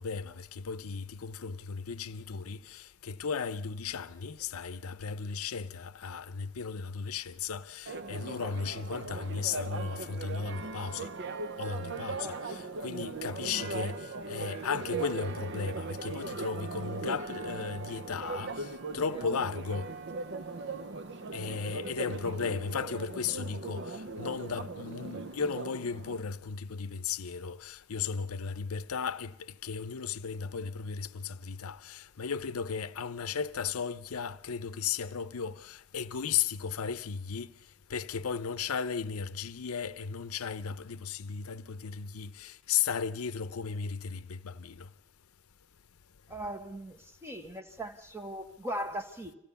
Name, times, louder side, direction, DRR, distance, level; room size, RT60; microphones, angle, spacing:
voice 1, 0.0-11.1 11.6-12.6 12.8-14.0 14.3-18.5 18.9-19.9 21.3-23.8 24.2-29.3 29.6-37.5 37.9-44.7, left 6 dB, 85° left, 0.7 m, -35 dB
Church bell, 7.9-26.2, right 3 dB, 55° right, 0.7 m, -39 dB
voice 2, 12.2-12.7 19.0-19.4 21.2-21.6 46.3-49.3, right 1 dB, 10° right, 1.3 m, -40 dB
25.5 x 16.0 x 6.9 m
head